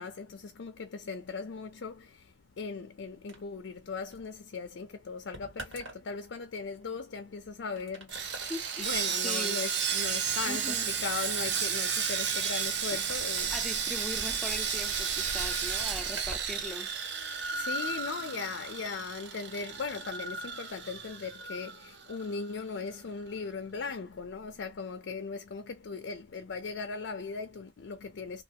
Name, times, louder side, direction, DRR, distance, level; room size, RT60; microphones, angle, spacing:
voice 1, 0.0-8.5 8.8-13.5 17.5-28.4, left 4 dB, 65° left, 0.4 m, -38 dB
sound 1, 3.3-16.6 16.8-17.5, right 2 dB, 75° right, 1.7 m, -50 dB
Sawing, 8.1-22.4 22.6-22.8 23.3-23.4, right 6 dB, 60° right, 0.7 m, -33 dB
voice 2, 8.5-8.9 9.2-9.6 10.5-10.9 12.9-13.0 13.5-16.9, left 1 dB, 5° left, 0.4 m, -40 dB
3.1 x 2.4 x 2.8 m
head